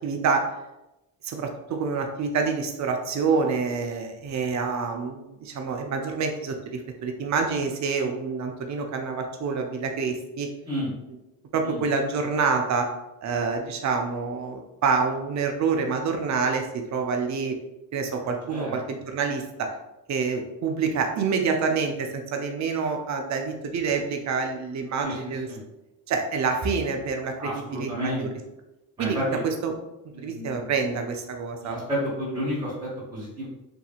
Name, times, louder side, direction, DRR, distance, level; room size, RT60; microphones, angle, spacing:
voice 1, 0.0-0.5 1.2-10.5 11.5-12.9 13.2-17.6 17.9-19.7 20.1-25.5 26.1-28.3 29.0-29.2 29.4-29.7 30.2-31.8, right 5 dB, 35° right, 4 dB, 0.5 m, -27 dB
voice 2, 25.0-25.6 27.4-28.3 29.0-29.4 30.1-30.7 31.6-33.5, equal, 10° right, -8 dB, 1.3 m, -31 dB
2.7 x 2.7 x 2.4 m, 0.95 s
supercardioid pair, 60°, 50 cm